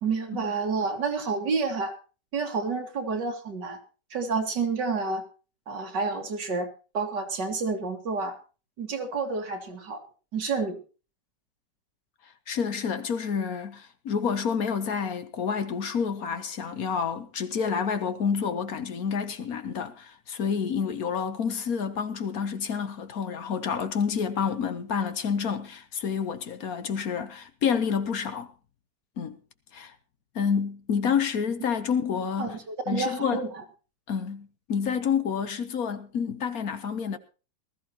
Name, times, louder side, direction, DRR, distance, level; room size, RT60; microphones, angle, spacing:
voice 1, 0.0-1.9 2.3-3.8 4.1-5.2 5.7-8.4 8.8-10.0 10.3-10.8 32.4-33.6, right 4 dB, 75° right, 2.6 m, -29 dB
voice 2, 12.5-28.5 29.2-29.4 29.7-29.9 30.3-32.6 32.9-33.4 34.1-37.2, left 6 dB, 60° left, 1.4 m, -29 dB
19.5 x 14.0 x 3.0 m
omnidirectional pair, 1.9 m